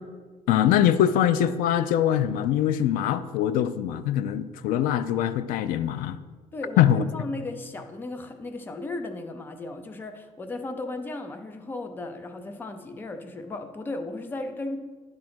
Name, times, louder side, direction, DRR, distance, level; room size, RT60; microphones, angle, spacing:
voice 1, 0.5-6.2 6.8-7.0, left 10 dB, 80° left, 14 dB, 0.4 m, -23 dB
voice 2, 6.5-14.8, left 2 dB, 15° left, 6 dB, 0.5 m, -35 dB
10.5 x 3.7 x 6.0 m, 1.4 s
cardioid pair, 175°, 14 cm